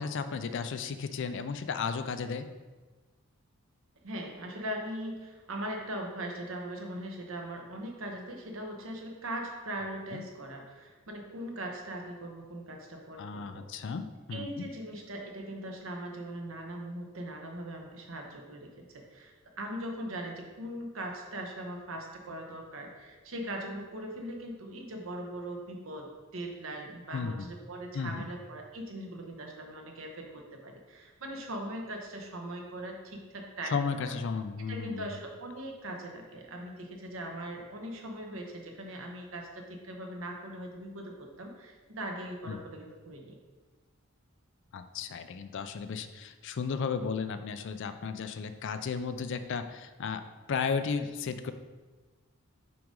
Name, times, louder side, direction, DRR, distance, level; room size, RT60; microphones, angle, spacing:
voice 1, 0.0-2.5 10.1-10.2 13.2-14.7 27.1-27.5 27.9-28.3 33.7-35.1 42.5-42.6 44.7-50.2 50.5-51.5, left 5 dB, 55° left, 10 dB, 0.4 m, -34 dB
voice 2, 4.0-13.7 14.3-34.2 34.6-43.4, right 1 dB, 65° right, 2 dB, 1.0 m, -40 dB
5.8 x 5.1 x 3.7 m, 1.3 s
head